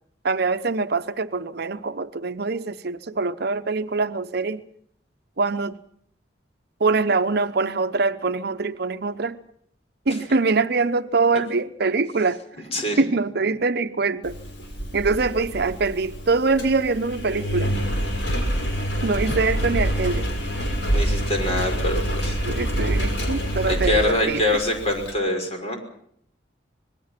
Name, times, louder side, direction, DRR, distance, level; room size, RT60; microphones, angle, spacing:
voice 1, 0.2-4.6 5.4-5.8 6.8-9.4 10.1-12.4 13.0-14.4 14.9-17.7 19.0-20.3 22.5-24.6, right 3 dB, 60° right, 0.8 m, -24 dB
voice 2, 12.7-13.0 20.9-22.4 23.7-25.8, left 1 dB, 35° left, 5.8 m, -24 dB
Engine, 14.2-25.1, equal, 65° left, 6.2 m, -26 dB
26.0 x 21.0 x 5.9 m
head